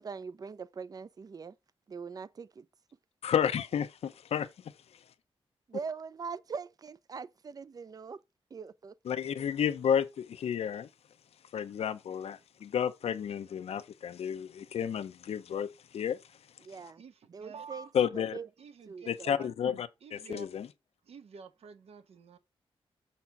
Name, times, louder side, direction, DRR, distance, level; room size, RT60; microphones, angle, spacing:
voice 1, 0.0-1.6 1.9-2.7 5.7-8.2 8.5-9.2 16.6-17.0 17.3-18.5 18.9-19.5, right 5 dB, 35° right, 0.5 m, -42 dB
voice 2, 3.2-4.5 9.1-10.9 11.5-15.7 15.9-16.2 17.9-18.4 19.1-20.7, left 8 dB, 85° left, 0.6 m, -31 dB
voice 3, 17.0-17.9 18.6-19.1 20.0-20.5 21.0-22.4, right 4 dB, 80° right, 1.2 m, -49 dB
6.8 x 4.2 x 5.8 m
wide cardioid pair, 155°, 10 cm